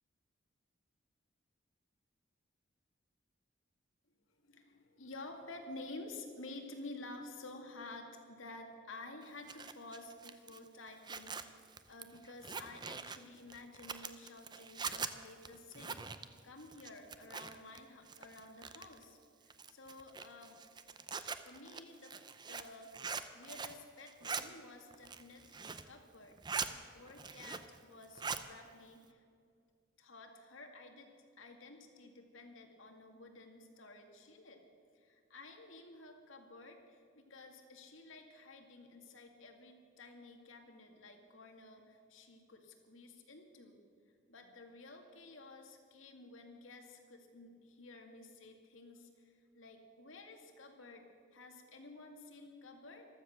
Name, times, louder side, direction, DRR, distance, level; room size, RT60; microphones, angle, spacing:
voice 1, 4.3-16.1 16.4-20.6 21.4-22.1 22.5-23.0 23.3-29.2 30.0-31.1 31.4-34.6 34.9-43.8 44.3-51.0 51.3-53.1, left 2 dB, 90° left, 4 dB, 2.2 m, -52 dB
Zipper (clothing), 9.2-17.8 18.1-19.0 19.5-23.8 24.1-24.4 24.9-25.9 26.2-26.7 27.1-27.8 28.0-28.5, right 5 dB, 20° right, 0.6 m, -43 dB
15.0 x 13.0 x 6.5 m, 2.3 s
head